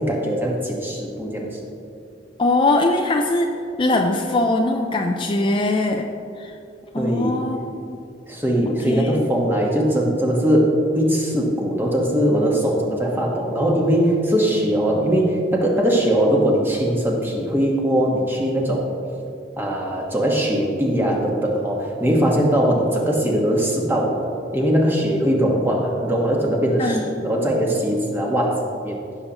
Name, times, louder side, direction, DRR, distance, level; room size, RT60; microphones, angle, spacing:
voice 1, 0.0-1.7 7.0-7.4 8.3-18.9 19.6-29.0, equal, 10° right, -1 dB, 1.3 m, -21 dB
voice 2, 2.4-3.5 3.8-6.1 6.4-6.5 6.9-7.6 8.7-9.3 26.8-27.1, left 2 dB, 30° left, 3 dB, 0.4 m, -21 dB
15.0 x 6.9 x 3.0 m, 2.6 s
head